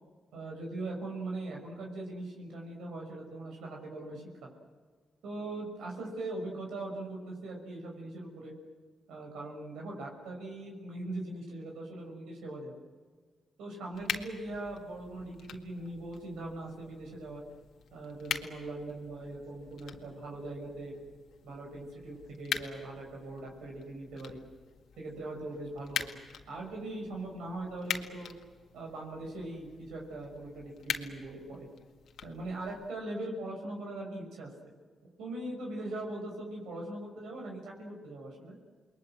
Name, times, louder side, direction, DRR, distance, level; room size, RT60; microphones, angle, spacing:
voice 1, 0.3-4.5 5.2-8.5 9.1-12.8 13.6-17.4 17.9-20.9 21.4-24.4 25.0-28.3 28.7-31.7 32.2-34.7 35.2-38.6, right 2 dB, 90° right, 0 dB, 6.3 m, -40 dB
sound 1, 13.9-32.9, left 8 dB, 80° left, 1.9 m, -43 dB
28.5 x 21.5 x 8.0 m, 1.5 s
cardioid pair, 70°, 0 cm